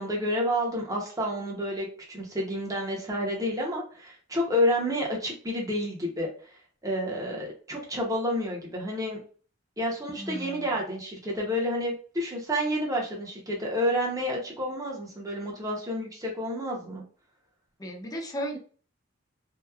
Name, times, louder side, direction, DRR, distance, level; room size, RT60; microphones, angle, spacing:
voice 1, 0.0-6.5 6.8-9.2 9.8-17.0, equal, 15° right, -2 dB, 0.8 m, -29 dB
voice 2, 10.2-10.8 17.8-18.6, equal, 20° left, 2 dB, 0.5 m, -35 dB
2.9 x 2.2 x 2.3 m, 0.41 s
head